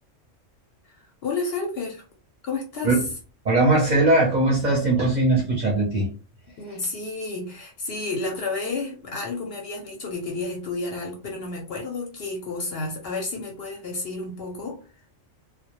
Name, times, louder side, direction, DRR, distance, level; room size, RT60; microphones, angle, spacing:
voice 1, 1.2-2.0 2.4-3.0 6.6-14.8, left 3 dB, 60° left, 1 dB, 0.7 m, -31 dB
voice 2, 3.4-6.1, right 2 dB, 45° right, -2 dB, 0.6 m, -20 dB
2.1 x 2.1 x 2.8 m, 0.36 s
omnidirectional pair, 1.3 m